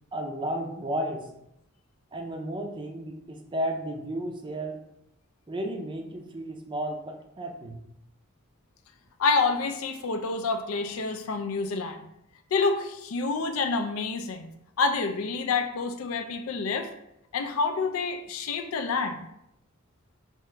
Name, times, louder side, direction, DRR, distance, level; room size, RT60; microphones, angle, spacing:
voice 1, 0.1-1.3 2.1-4.8 5.5-7.8, right 1 dB, 25° right, 3 dB, 0.4 m, -33 dB
voice 2, 9.2-12.1 12.5-14.5 14.8-16.9 17.3-19.3, left 4 dB, 85° left, 7 dB, 0.4 m, -28 dB
3.5 x 2.9 x 3.2 m, 0.81 s
head